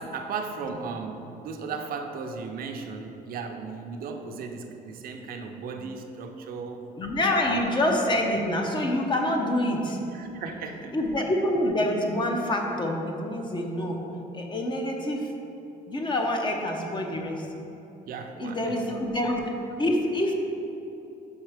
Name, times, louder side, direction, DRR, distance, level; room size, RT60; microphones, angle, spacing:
voice 1, 0.0-6.8 7.5-7.6 10.1-10.9 18.0-18.8, right 5 dB, 60° right, 4 dB, 0.6 m, -36 dB
voice 2, 7.0-10.0 10.9-14.0 14.3-15.3 15.9-17.5 18.4-19.5 19.8-20.3, left 1 dB, 25° left, 2 dB, 0.7 m, -26 dB
5.3 x 4.5 x 4.9 m, 3.0 s
cardioid pair, 110°, 17 cm